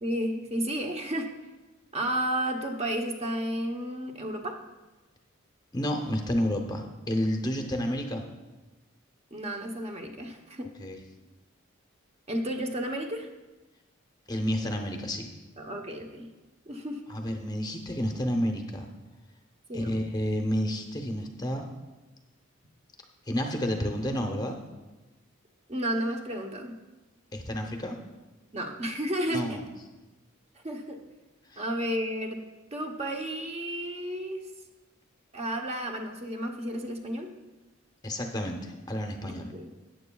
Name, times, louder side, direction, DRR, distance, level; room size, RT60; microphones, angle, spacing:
voice 1, 0.0-1.3 1.9-4.6 9.3-10.7 12.3-13.3 15.6-16.3 16.7-17.0 19.7-20.0 25.7-26.8 28.5-29.6 30.6-31.0 31.6-32.4 32.7-34.5 35.3-37.3 39.2-39.7, right 1 dB, 30° right, 2 dB, 0.8 m, -32 dB
voice 2, 5.7-8.2 10.8-11.0 14.3-15.3 17.1-18.9 19.7-21.7 23.3-24.6 27.3-28.0 29.3-29.6 31.5-31.6 38.0-39.5, equal, 20° left, 3 dB, 0.7 m, -30 dB
14.0 x 9.1 x 2.3 m, 1.1 s
head